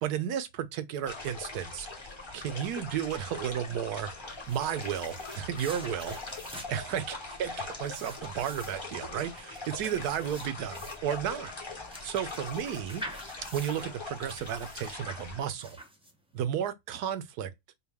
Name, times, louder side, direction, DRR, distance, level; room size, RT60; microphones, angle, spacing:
voice 1, 0.0-1.9 2.3-4.1 4.5-6.2 6.7-7.1 7.4-11.5 12.0-13.0 13.5-15.8 16.3-17.5, right 9 dB, 90° right, 1.2 m, -33 dB
sound 1, 1.1-15.4, left 3 dB, 20° left, 0.8 m, -42 dB
sound 2, 4.3-16.4, equal, 5° right, 0.4 m, -47 dB
4.6 x 2.3 x 3.4 m
omnidirectional pair, 1.6 m